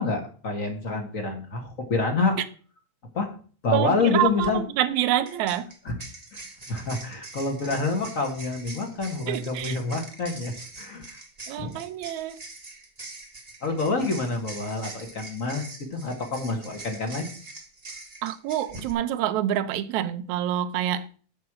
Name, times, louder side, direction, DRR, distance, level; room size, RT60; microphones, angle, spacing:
voice 1, 0.0-2.4 3.1-3.3 3.6-4.6 5.8-5.9 6.3-6.4 6.7-11.2 11.6-11.7 13.6-17.3, left 3 dB, 35° left, 1.5 m, -27 dB
voice 2, 3.7-5.7 9.3-9.8 11.5-12.4 18.2-21.1, right 11 dB, 80° right, 2.1 m, -27 dB
sound 1, 4.3-4.5 5.3-18.9, right 2 dB, 30° right, 0.7 m, -43 dB
7.9 x 5.8 x 7.4 m
omnidirectional pair, 3.3 m